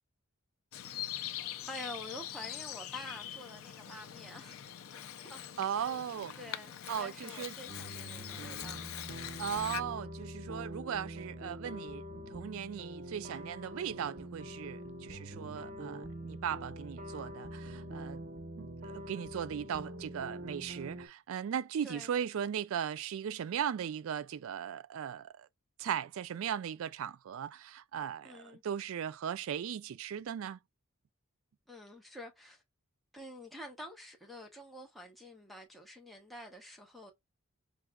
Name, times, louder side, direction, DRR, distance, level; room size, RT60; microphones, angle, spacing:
Bird vocalization bird call bird song, 0.7-9.8, left 11 dB, 65° left, 0.4 m, -43 dB
voice 1, 1.7-4.6 5.2-5.4 5.7-6.1 6.4-8.9 21.8-22.1 28.2-28.6 31.7-32.6 33.1-37.1, left 1 dB, ahead, 0.7 m, -48 dB
voice 2, 5.6-6.3 6.9-7.5 9.4-18.2 18.6-25.5 25.8-30.6, right 8 dB, 65° right, 0.3 m, -38 dB
sound 1, 7.7-21.1, equal, 45° right, 0.8 m, -45 dB
4.7 x 2.9 x 2.2 m
head